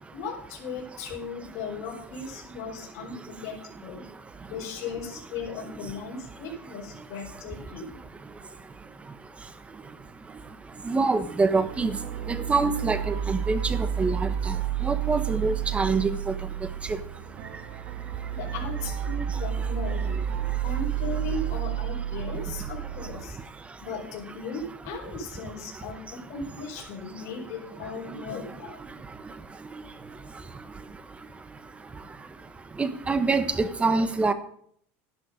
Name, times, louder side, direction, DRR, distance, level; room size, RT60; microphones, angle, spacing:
voice 1, 0.1-4.0 4.5-8.0 18.3-20.2 20.6-23.4 23.8-28.8, left 4 dB, 55° left, -2 dB, 4.8 m, -37 dB
voice 2, 10.8-12.0 12.3-14.6 14.8-16.1 32.8-34.3, right 3 dB, 15° right, 11 dB, 1.2 m, -25 dB
sound 1, 11.5-23.2, right 10 dB, 70° right, 1.4 m, -31 dB
11.5 x 11.5 x 5.2 m, 0.64 s
supercardioid pair, 115°, 7 cm